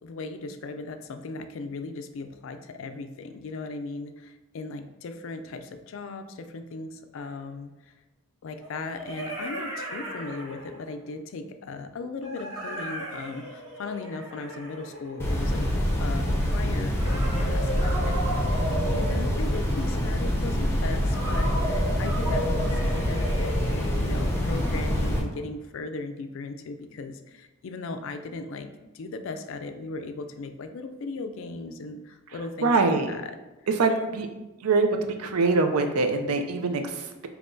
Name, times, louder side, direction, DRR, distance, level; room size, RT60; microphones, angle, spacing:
voice 1, 0.0-7.9 8.4-15.7 16.0-28.7 28.9-33.4 33.9-34.2, left 3 dB, 60° left, 8 dB, 0.3 m, -37 dB
sound 1, 7.1-7.2 8.6-11.0 12.2-15.7 16.9-20.0 21.1-25.4, right 1 dB, 20° right, 1.0 m, -35 dB
sound 2, 15.2-25.2, equal, 10° left, 0.6 m, -26 dB
voice 2, 32.6-33.1 33.7-34.3 34.6-34.9 35.2-37.3, right 3 dB, 80° right, 6 dB, 0.5 m, -23 dB
5.4 x 2.9 x 2.6 m, 1.1 s
head